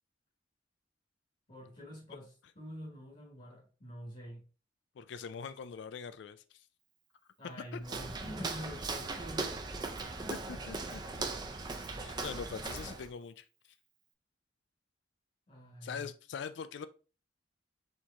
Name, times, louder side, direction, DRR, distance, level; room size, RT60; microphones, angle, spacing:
voice 1, 1.5-4.4 7.4-9.7 10.2-10.6 15.5-16.1, equal, 40° left, 1.3 m, -46 dB
voice 2, 5.0-6.6 7.7-7.8 10.3-11.0 12.0-13.4 15.8-16.9, left 6 dB, 65° left, 0.3 m, -43 dB
Walk footsteps, 7.8-13.1, right 3 dB, 20° right, 0.4 m, -39 dB
4.4 x 3.0 x 3.5 m
head